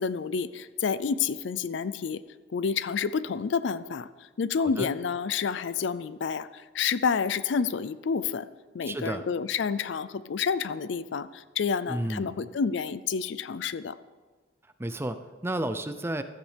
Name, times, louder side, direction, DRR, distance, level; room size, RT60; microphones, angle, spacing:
voice 1, 0.0-2.2 2.5-4.1 4.4-8.5 8.7-14.0, left 6 dB, 70° left, 16 dB, 0.4 m, -29 dB
voice 2, 4.6-4.9 8.8-9.3 11.9-12.5 14.6-16.2, right 1 dB, 10° right, 10 dB, 0.5 m, -32 dB
15.5 x 13.0 x 3.4 m, 1.4 s
head